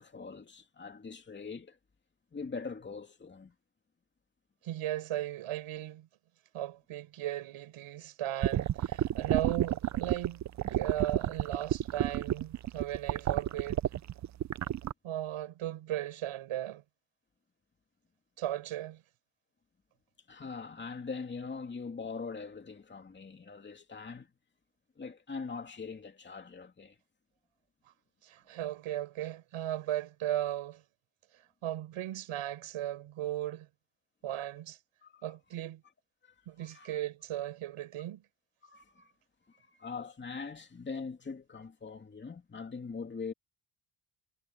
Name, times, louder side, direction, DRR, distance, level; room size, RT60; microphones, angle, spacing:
voice 1, 0.0-1.8 2.3-3.5 20.3-24.3 25.0-27.0 35.0-35.2 36.6-36.9 38.6-39.1 39.5-43.3, left 4 dB, 20° left, 2.6 m, -42 dB
voice 2, 4.6-6.1 6.5-10.4 10.7-13.8 15.0-16.8 18.4-19.0 28.2-30.8 31.6-33.7 34.2-34.8 35.2-35.8 36.5-38.2, right 13 dB, 80° right, 5.0 m, -36 dB
sound 1, 8.4-14.9, right 12 dB, 35° right, 0.4 m, -30 dB
cardioid pair, 150°, 49 cm